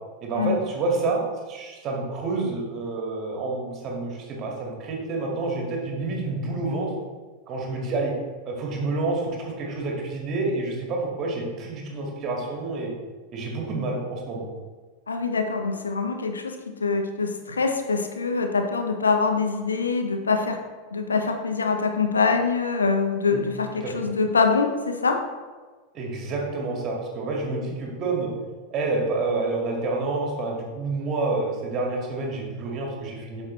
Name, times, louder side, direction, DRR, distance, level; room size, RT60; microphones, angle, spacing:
voice 1, 0.2-7.0 7.5-8.1 8.4-12.9 13.3-14.5 23.3-23.4 23.8-23.9 25.9-28.3 28.7-33.4, right 3 dB, 30° right, -1 dB, 2.0 m, -28 dB
voice 2, 15.1-20.6 20.9-25.2, left 4 dB, 75° left, 5 dB, 0.8 m, -24 dB
8.6 x 6.4 x 3.2 m, 1.4 s
figure-of-eight pair, 90°, 0 cm